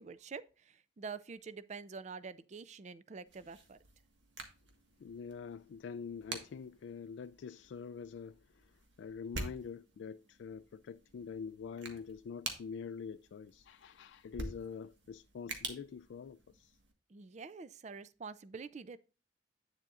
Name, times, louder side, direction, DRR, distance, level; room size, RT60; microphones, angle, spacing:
voice 1, 0.0-3.8 17.1-19.0, right 5 dB, 40° right, 0.4 m, -47 dB
sound 1, 3.3-16.9, right 3 dB, 75° right, 1.6 m, -48 dB
voice 2, 5.0-16.8, left 6 dB, 80° left, 0.3 m, -45 dB
9.1 x 7.3 x 2.4 m
head